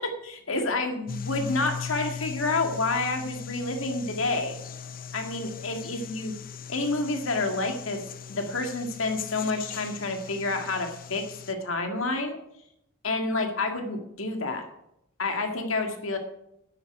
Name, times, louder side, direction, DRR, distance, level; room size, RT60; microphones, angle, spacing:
voice 1, 0.0-4.6 5.1-6.3 6.7-8.0 8.3-12.4 13.0-14.6 15.2-16.2, left 3 dB, 90° left, 5 dB, 2.0 m, -29 dB
Temple Bell Valley of the Temples, 1.1-11.5, left 7 dB, 45° left, 0.7 m, -39 dB
9.8 x 8.0 x 9.1 m, 0.82 s
head